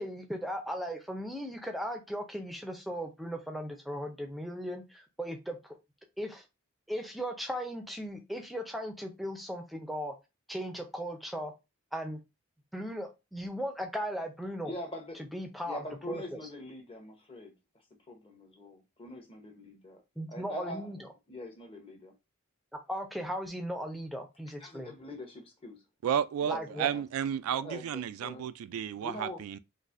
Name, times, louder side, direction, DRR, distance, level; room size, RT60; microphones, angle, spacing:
voice 1, 0.0-5.8 6.2-6.4 6.9-10.1 10.5-11.5 11.9-12.2 12.7-14.7 15.3-16.4 20.2-21.1 22.9-24.9 26.5-26.9, equal, ahead, 0.5 m, -37 dB
voice 2, 14.6-15.2 15.6-17.5 18.1-20.0 20.3-20.9 21.3-22.1 24.6-25.8 26.5-27.0 27.5-29.4, left 1 dB, 25° left, 0.9 m, -44 dB
voice 3, 26.0-29.6, right 9 dB, 85° right, 0.3 m, -32 dB
3.9 x 2.6 x 2.5 m
head